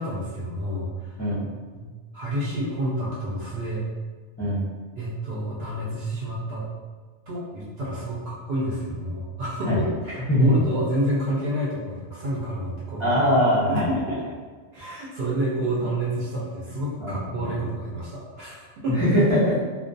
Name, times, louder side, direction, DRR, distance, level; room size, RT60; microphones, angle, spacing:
voice 1, 0.0-1.2 1.7-1.9 2.1-3.8 5.0-6.7 7.3-9.7 10.1-13.2 13.7-14.2 14.7-19.0, right 1 dB, 60° right, -6 dB, 0.8 m, -29 dB
voice 2, 13.0-13.8 17.0-17.7 18.9-19.6, equal, 20° left, -11 dB, 0.4 m, -21 dB
2.3 x 2.2 x 2.5 m, 1.4 s
omnidirectional pair, 1.4 m